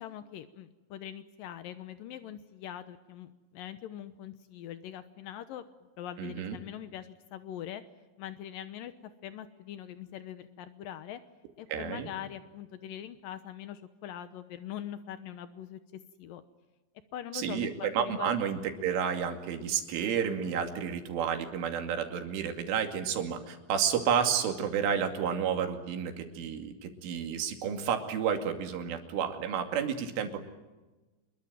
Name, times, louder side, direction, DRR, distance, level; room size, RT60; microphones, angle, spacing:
voice 1, 0.0-5.7 6.0-7.8 8.2-8.9 9.2-11.2 11.6-15.8 16.2-16.4 17.1-18.3, left 10 dB, 85° left, 10 dB, 2.0 m, -42 dB
voice 2, 6.2-6.6 11.7-12.1 17.3-30.4, right 7 dB, 85° right, 5 dB, 5.0 m, -31 dB
27.0 x 22.0 x 9.1 m, 1.1 s
omnidirectional pair, 5.5 m